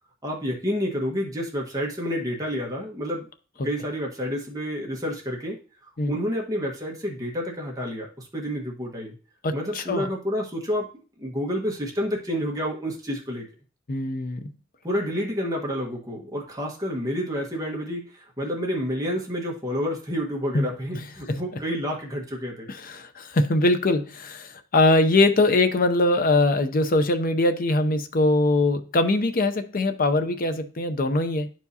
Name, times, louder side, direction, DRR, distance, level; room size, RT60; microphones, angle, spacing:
voice 1, 0.2-3.3 3.6-5.6 5.8-9.1 9.5-10.9 11.2-13.5 14.8-22.7, equal, 15° right, 1.4 m, -29 dB
voice 2, 9.4-10.1 13.9-14.4 20.5-20.6 20.9-21.4 22.7-31.5, left 2 dB, 40° left, 0.6 m, -22 dB
11.0 x 4.7 x 2.8 m
head